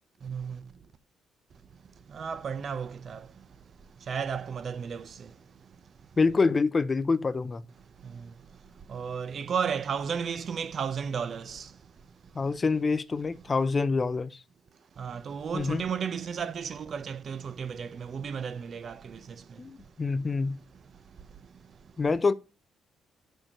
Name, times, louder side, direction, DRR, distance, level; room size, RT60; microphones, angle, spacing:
voice 1, 0.2-0.6 2.1-3.2 4.1-5.1 8.9-11.7 15.0-19.2, right 6 dB, 50° right, 0.8 m, -33 dB
voice 2, 6.2-7.6 12.3-14.4 15.5-15.8 19.6-20.6 22.0-22.3, left 4 dB, 30° left, 0.6 m, -26 dB
6.4 x 4.6 x 6.6 m
cardioid pair, 90°, 0 cm